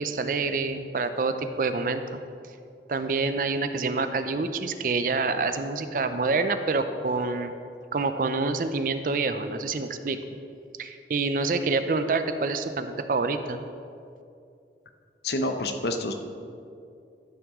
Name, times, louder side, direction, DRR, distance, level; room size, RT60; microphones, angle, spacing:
voice 1, 0.0-2.2 2.9-7.5 7.9-10.2 10.8-13.6, right 3 dB, 50° right, 10 dB, 0.4 m, -27 dB
voice 2, 15.2-16.1, left 2 dB, 70° left, 6 dB, 0.7 m, -28 dB
12.5 x 5.9 x 3.6 m, 2.5 s
head